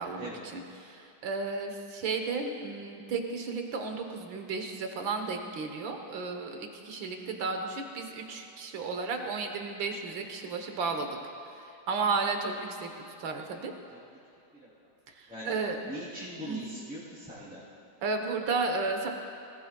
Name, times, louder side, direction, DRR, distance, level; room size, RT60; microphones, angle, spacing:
voice 1, 0.0-11.1 11.6-13.7 15.1-15.8 16.5-16.6 18.0-19.1, right 4 dB, 80° right, 4 dB, 1.9 m, -33 dB
voice 2, 15.9-17.6, equal, 5° right, -13 dB, 3.2 m, -41 dB
19.5 x 18.0 x 2.3 m, 2.8 s
omnidirectional pair, 2.1 m